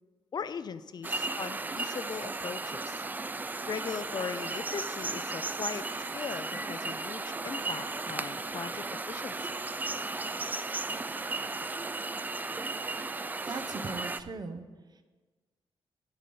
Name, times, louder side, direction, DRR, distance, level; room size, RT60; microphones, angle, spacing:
voice 1, 0.3-3.0 3.7-5.9 6.1-9.6, left 6 dB, 50° left, 14 dB, 0.5 m, -39 dB
sound 1, 1.0-14.2, right 3 dB, 20° right, 0.3 m, -35 dB
voice 2, 13.5-15.0, right 3 dB, 50° right, 9 dB, 0.8 m, -39 dB
11.5 x 5.2 x 6.8 m, 1.3 s
cardioid pair, 105°, 9 cm